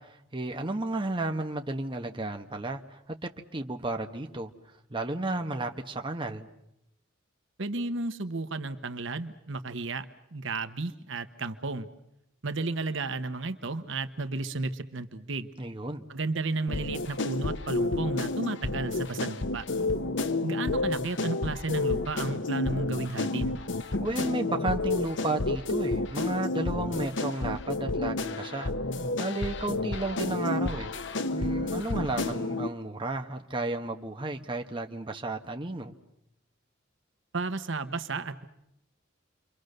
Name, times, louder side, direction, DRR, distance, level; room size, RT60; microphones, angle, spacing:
voice 1, 0.0-4.5 4.9-6.5 15.6-16.0 24.0-28.7 29.2-30.9 31.3-35.9, right 2 dB, 25° right, 1.2 m, -33 dB
voice 2, 7.6-10.0 10.3-11.9 12.4-15.5 16.1-19.7 20.4-23.6 37.3-38.4, right 3 dB, 65° right, 1.1 m, -33 dB
sound 1, 16.7-32.7, left 2 dB, 65° left, 0.9 m, -30 dB
28.5 x 24.0 x 6.6 m
head